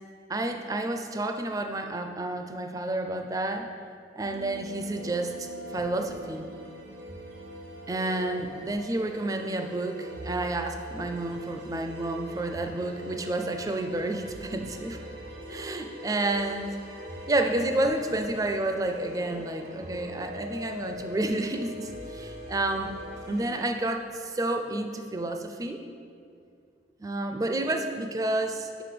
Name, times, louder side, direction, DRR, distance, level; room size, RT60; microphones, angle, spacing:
voice 1, 0.3-3.7 4.2-6.5 7.9-15.0 15.5-16.8 17.3-22.9 23.3-25.8 27.0-28.8, right 2 dB, 20° right, 5 dB, 0.4 m, -30 dB
sound 1, 4.2-23.6, left 1 dB, 90° right, 1.2 m, -41 dB
5.3 x 5.0 x 6.0 m, 2.4 s
head